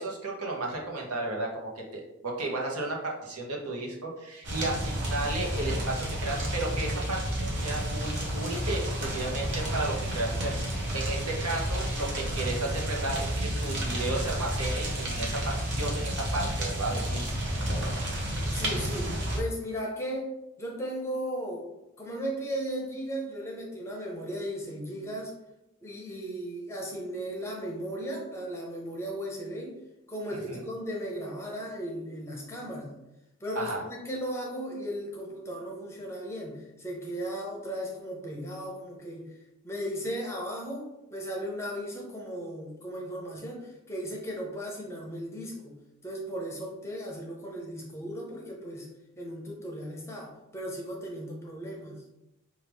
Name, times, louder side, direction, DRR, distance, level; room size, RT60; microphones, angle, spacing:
voice 1, 0.0-17.3 30.5-30.6 33.5-33.8, right 2 dB, 80° right, -1 dB, 0.9 m, -33 dB
sound 1, 4.4-19.4, right 1 dB, 50° right, 0.9 m, -31 dB
voice 2, 18.5-20.3 20.6-21.7 22.0-25.3 25.8-29.8 30.1-32.9 33.4-45.8 46.0-48.9 49.2-52.0, equal, 10° left, -1 dB, 0.6 m, -36 dB
4.6 x 2.4 x 3.4 m, 0.94 s
head